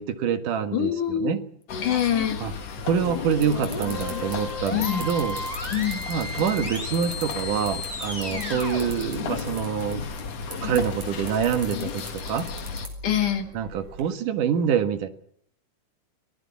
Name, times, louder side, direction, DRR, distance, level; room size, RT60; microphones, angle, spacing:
voice 1, 0.0-1.4 2.4-2.5 2.8-5.4 6.1-10.3 10.6-12.5 13.5-15.1, right 8 dB, 80° right, 8 dB, 3.2 m, -26 dB
voice 2, 0.7-1.4 1.8-2.4 4.7-5.1 5.7-6.0 13.0-13.5, left 10 dB, 75° left, 6 dB, 3.7 m, -24 dB
sound 1, 1.7-12.9, left 6 dB, 55° left, 2.7 m, -34 dB
sound 2, 2.5-14.0, right 2 dB, 60° right, 6.9 m, -42 dB
sound 3, 2.9-10.0, left 2 dB, 10° left, 4.4 m, -35 dB
24.5 x 19.0 x 7.2 m, 0.63 s
omnidirectional pair, 3.6 m